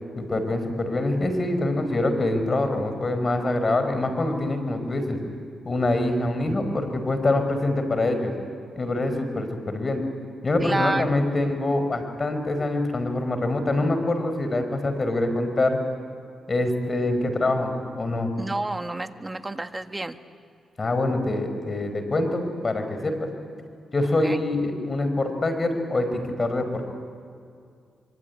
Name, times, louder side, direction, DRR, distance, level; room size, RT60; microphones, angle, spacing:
voice 1, 0.1-5.2 5.6-8.3 8.7-10.0 10.4-15.8 16.5-18.3 20.8-23.3 23.9-26.9, left 2 dB, 40° left, 8 dB, 5.1 m, -25 dB
voice 2, 10.6-11.0 18.4-20.2 24.2-24.4, right 2 dB, 20° right, 8 dB, 1.6 m, -29 dB
25.5 x 24.5 x 9.7 m, 2.3 s
cardioid pair, 65°, 0 cm